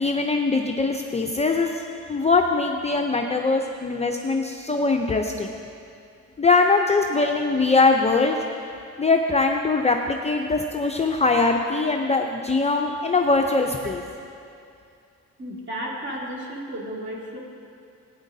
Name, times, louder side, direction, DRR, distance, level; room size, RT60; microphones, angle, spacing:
voice 1, 0.0-5.5 6.4-8.4 9.0-14.0, left 3 dB, 20° left, 2 dB, 0.5 m, -22 dB
voice 2, 15.4-17.4, equal, 35° right, -4 dB, 2.5 m, -33 dB
14.0 x 9.1 x 2.7 m, 2.5 s
supercardioid pair, 65°, 33 cm